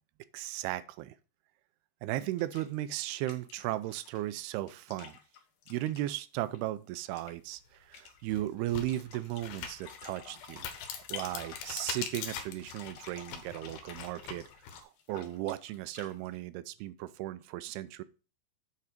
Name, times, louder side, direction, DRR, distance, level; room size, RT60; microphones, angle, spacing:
voice 1, 0.3-1.2 2.0-5.2 5.7-10.7 11.1-14.4 14.7-18.0, right 15 dB, 80° right, 2.5 m, -36 dB
sound 1, 2.4-2.8 3.1-6.7 7.0-7.3 7.7-8.4 8.9-9.4 9.8-12.3 12.6-16.4, left 8 dB, 60° left, 2.3 m, -50 dB
sound 2, 7.5-7.6 8.2-14.8, left 7 dB, 80° left, 3.2 m, -42 dB
8.5 x 4.5 x 6.6 m
omnidirectional pair, 4.8 m